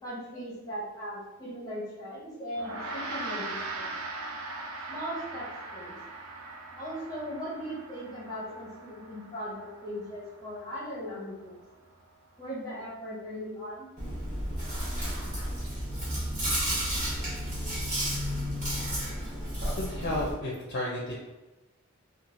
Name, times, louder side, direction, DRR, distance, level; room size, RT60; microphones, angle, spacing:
voice 1, 0.0-3.8 4.9-5.9 6.8-11.6 12.4-13.9, equal, 15° left, -8 dB, 0.8 m, -38 dB
Gong, 2.5-12.1, right 2 dB, 75° right, 0.4 m, -41 dB
Chewing mastication, 14.0-20.3, equal, 35° right, 1.1 m, -32 dB
voice 2, 19.7-21.1, left 1 dB, 50° left, -4 dB, 0.6 m, -32 dB
3.0 x 2.3 x 2.5 m, 1.1 s
head